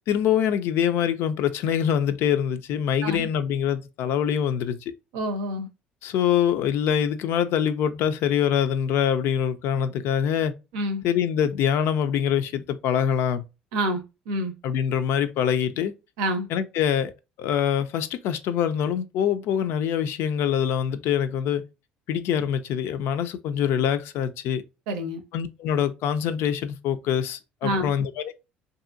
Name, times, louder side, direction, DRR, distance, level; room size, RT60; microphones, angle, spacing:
voice 1, 0.1-4.8 6.0-10.5 11.0-13.4 14.6-15.9 16.5-17.1 17.4-21.6 22.1-24.6 25.3-28.3, left 9 dB, 65° left, 0.4 m, -24 dB
voice 2, 5.1-5.7 10.7-11.0 13.7-14.5 16.2-16.5 24.9-25.2 27.6-27.9, equal, 75° right, 0.6 m, -27 dB
2.6 x 2.6 x 2.5 m
hypercardioid pair, 60°, 5 cm